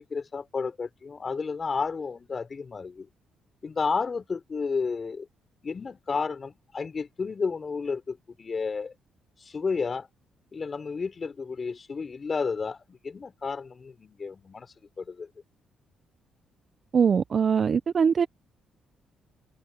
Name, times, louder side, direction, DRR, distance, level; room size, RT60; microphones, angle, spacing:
voice 1, 0.0-3.1 3.6-5.3 5.6-8.9 9.4-10.1 10.5-14.7 15.0-15.3, left 5 dB, 35° left, 4.8 m, -32 dB
voice 2, 16.9-18.3, right 6 dB, 45° right, 0.8 m, -22 dB
cardioid pair, 90°, 0 cm